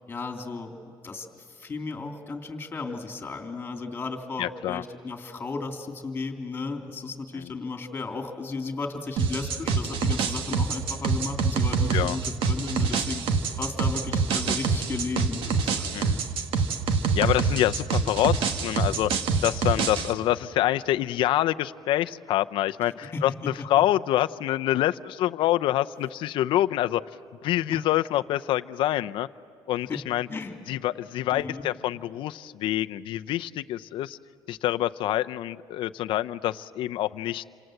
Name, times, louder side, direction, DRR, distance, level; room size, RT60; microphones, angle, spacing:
voice 1, 0.1-0.8 1.0-13.3 13.6-15.9 23.0-23.7 29.9-30.0 30.3-30.6 31.3-31.7, left 4 dB, 20° left, 4 dB, 3.1 m, -34 dB
voice 2, 4.4-4.8 7.3-7.5 11.9-12.2 15.9-16.2 17.1-19.1 19.4-23.3 23.7-27.0 27.4-29.3 29.7-30.3 30.7-34.2 34.5-37.4, left 14 dB, 70° left, 11 dB, 0.6 m, -26 dB
sound 1, 9.2-20.1, right 5 dB, 75° right, 1.8 m, -26 dB
28.5 x 26.5 x 7.8 m, 2.6 s
cardioid pair, 140°, 9 cm